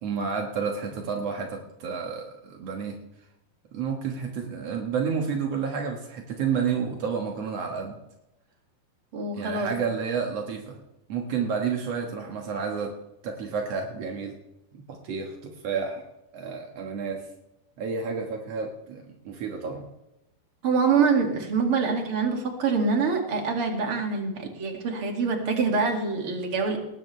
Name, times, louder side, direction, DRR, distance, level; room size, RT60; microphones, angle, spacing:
voice 1, 0.0-3.0 3.7-8.0 9.3-10.8 11.1-12.9 13.2-14.4 14.7-16.1 16.3-17.2 17.8-19.9, right 6 dB, 65° right, 1 dB, 1.6 m, -30 dB
voice 2, 9.1-9.7 20.6-26.8, right 5 dB, 40° right, 2 dB, 2.3 m, -25 dB
19.5 x 16.5 x 3.3 m, 0.91 s
omnidirectional pair, 5.0 m